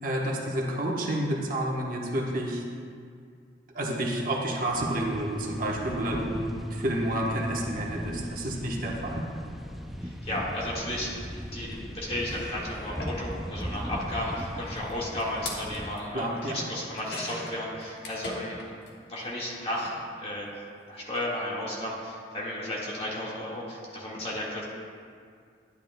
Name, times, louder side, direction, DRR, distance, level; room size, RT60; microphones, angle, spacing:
voice 1, 0.0-2.6 3.7-9.2 16.1-16.6, right 1 dB, 50° right, -2 dB, 1.0 m, -29 dB
sound 1, 4.7-15.9, equal, ahead, 0.4 m, -39 dB
voice 2, 10.0-18.6 19.1-20.5 20.9-24.6, left 1 dB, 30° left, -5 dB, 1.7 m, -34 dB
sound 2, 11.7-11.8 12.2-18.9 19.2-20.0 21.0-21.2 21.4-21.5, left 2 dB, 65° left, 1.3 m, -43 dB
11.5 x 10.0 x 2.2 m, 2.2 s
head